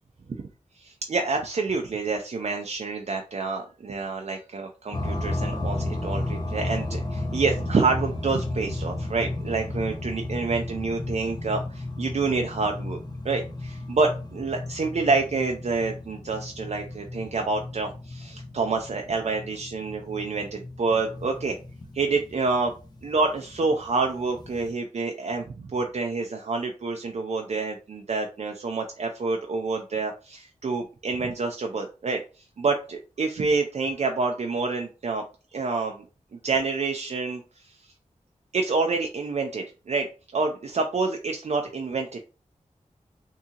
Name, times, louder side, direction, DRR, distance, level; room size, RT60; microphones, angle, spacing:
voice 1, 0.8-21.6 21.9-22.7 23.0-32.2 32.6-35.2 35.5-36.0 36.4-37.7 38.5-40.1 40.3-42.2, right 4 dB, 55° right, 3 dB, 0.4 m, -27 dB
sound 1, 4.9-24.7, left 2 dB, 30° left, 0.8 m, -34 dB
3.6 x 2.7 x 2.8 m, 0.34 s
wide cardioid pair, 60°, 13 cm